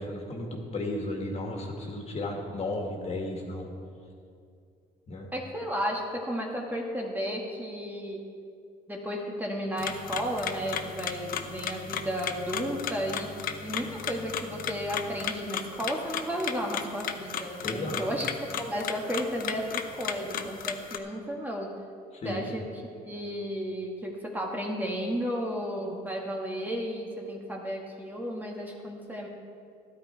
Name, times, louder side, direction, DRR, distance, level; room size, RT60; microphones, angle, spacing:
voice 1, 0.0-3.7 5.1-5.3 17.6-18.1 22.1-22.5, left 2 dB, 40° left, 1 dB, 2.1 m, -34 dB
voice 2, 5.3-8.3 8.9-13.3 13.6-18.3 18.6-21.8 22.2-22.6 23.0-29.3, equal, 10° right, -1 dB, 1.5 m, -33 dB
sound 1, 9.8-21.0, left 8 dB, 60° left, 0.8 m, -35 dB
13.0 x 11.0 x 4.5 m, 2.4 s
cardioid pair, 110°, 17 cm